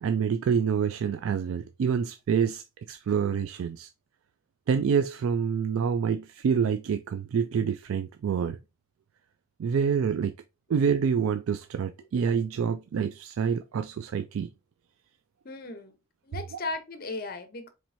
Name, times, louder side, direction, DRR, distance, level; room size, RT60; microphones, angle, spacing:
voice 1, 0.0-3.9 4.7-8.6 9.6-10.3 10.7-14.5, right 6 dB, 75° right, 0.3 m, -27 dB
voice 2, 15.4-15.9 16.2-17.7, left 3 dB, 45° left, 0.7 m, -36 dB
4.5 x 3.2 x 2.6 m
head